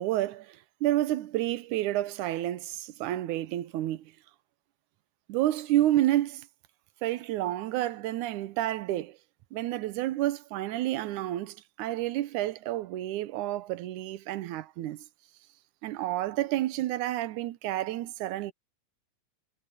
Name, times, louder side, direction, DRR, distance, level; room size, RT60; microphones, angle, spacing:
voice 1, 0.0-4.1 5.3-6.5 7.0-9.2 9.5-15.0 15.8-18.5, right 14 dB, 75° right, 2.3 m, -30 dB
omnidirectional pair, 3.6 m